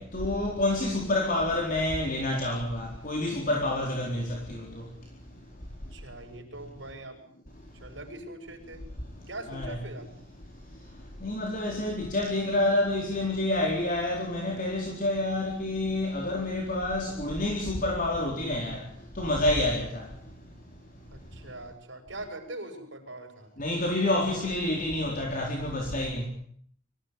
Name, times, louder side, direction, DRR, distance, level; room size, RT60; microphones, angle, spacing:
voice 1, 0.0-4.8 9.5-9.8 11.2-18.8 19.2-20.0 23.6-26.2, left 1 dB, 45° left, 4.3 m, -28 dB
voice 2, 5.9-7.2 7.8-8.8 9.3-10.1 21.1-23.5, right 2 dB, 65° right, 6.6 m, -42 dB
24.5 x 16.0 x 9.5 m
head